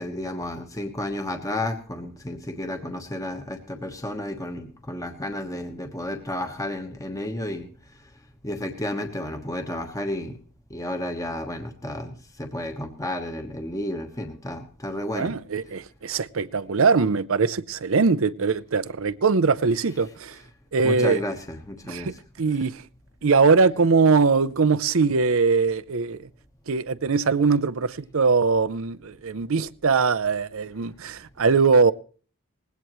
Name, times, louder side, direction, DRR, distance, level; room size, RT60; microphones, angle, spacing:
voice 1, 0.0-7.7 8.4-10.4 10.7-15.4 20.8-22.2, left 1 dB, 15° left, 1.2 m, -32 dB
voice 2, 15.1-20.4 20.7-21.2 21.8-22.8 23.2-26.3 26.7-31.9, right 4 dB, 60° right, 0.6 m, -21 dB
19.5 x 16.5 x 3.1 m
head